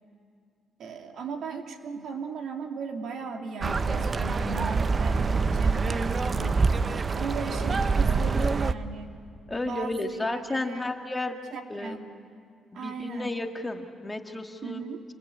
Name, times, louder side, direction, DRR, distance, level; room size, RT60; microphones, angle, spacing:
voice 1, 0.8-6.7 7.1-9.2 9.6-10.9 11.5-12.1 12.7-13.4 14.6-15.1, right 5 dB, 65° right, 4 dB, 2.5 m, -37 dB
sound 1, 3.6-8.7, right 4 dB, 35° right, 0.8 m, -25 dB
voice 2, 9.5-11.4 11.7-12.0 12.7-14.8, left 2 dB, 15° left, 4 dB, 1.9 m, -32 dB
28.0 x 24.5 x 8.5 m, 2.3 s
cardioid pair, 90°, 0 cm